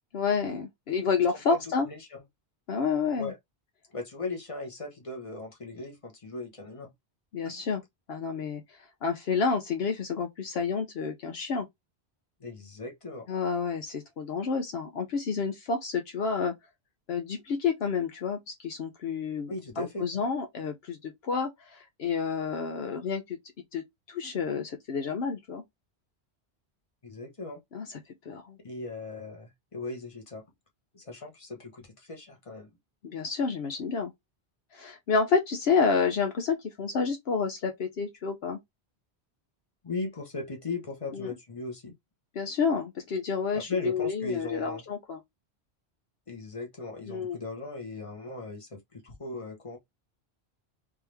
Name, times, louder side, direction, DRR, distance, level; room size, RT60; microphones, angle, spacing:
voice 1, 0.1-1.9 2.7-3.3 7.3-7.8 8.1-8.6 9.0-11.7 13.3-16.5 17.1-23.4 23.7-25.6 27.7-28.0 28.3-28.6 33.0-34.1 34.7-38.6 41.1-41.3 42.4-45.2 47.1-47.4, left 5 dB, 70° left, 0.9 m, -29 dB
voice 2, 1.8-2.2 3.2-3.4 3.9-6.9 12.4-13.3 19.5-20.0 27.0-27.6 28.6-30.4 30.9-32.7 39.8-41.9 43.5-44.8 46.3-49.8, left 3 dB, 30° left, 1.3 m, -38 dB
3.5 x 3.0 x 3.3 m
omnidirectional pair, 1.1 m